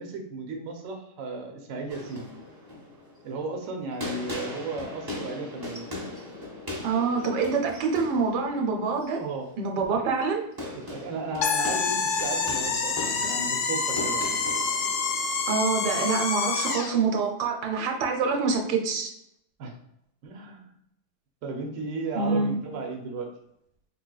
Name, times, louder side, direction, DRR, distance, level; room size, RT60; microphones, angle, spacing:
voice 1, 0.0-2.3 3.2-5.9 9.1-9.5 9.9-10.0 10.7-14.2 19.6-19.7 20.2-20.7 21.4-23.3, right 3 dB, 60° right, 3 dB, 0.9 m, -35 dB
sound 1, 1.9-16.5, left 2 dB, 30° right, 0.4 m, -40 dB
voice 2, 6.8-9.2 9.6-10.4 15.5-19.1 22.2-22.5, right 4 dB, 85° right, 3 dB, 1.2 m, -26 dB
sound 2, 11.4-17.0, left 5 dB, 80° left, 0.6 m, -27 dB
3.9 x 3.1 x 2.2 m, 0.75 s
omnidirectional pair, 1.8 m